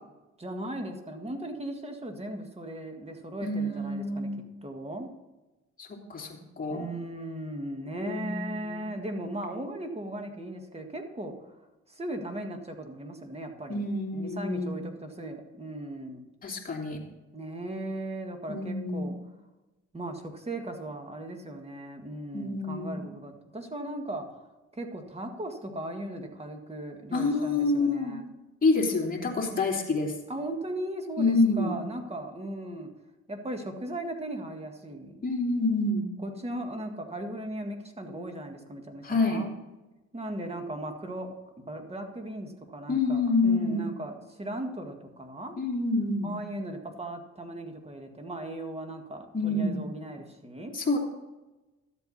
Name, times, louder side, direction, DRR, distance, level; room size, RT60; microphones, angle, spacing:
voice 1, 0.4-4.3 4.6-5.1 6.7-11.6 11.9-13.8 14.1-16.2 17.3-19.1 19.9-24.4 24.7-28.3 30.3-32.9 33.3-35.2 36.2-39.5 40.1-45.6 46.2-50.8, right 1 dB, 20° right, 4 dB, 1.9 m, -37 dB
voice 2, 3.4-4.3 5.8-6.9 8.0-8.9 13.7-14.9 16.4-17.0 18.5-19.1 22.3-23.0 27.1-28.2 28.6-30.1 31.2-31.9 35.2-36.1 39.0-39.5 42.9-43.9 45.6-46.3 49.3-49.9 50.7-51.0, left 3 dB, 30° left, -1 dB, 2.8 m, -27 dB
12.5 x 8.2 x 4.2 m, 1.1 s
cardioid pair, 90°, 30 cm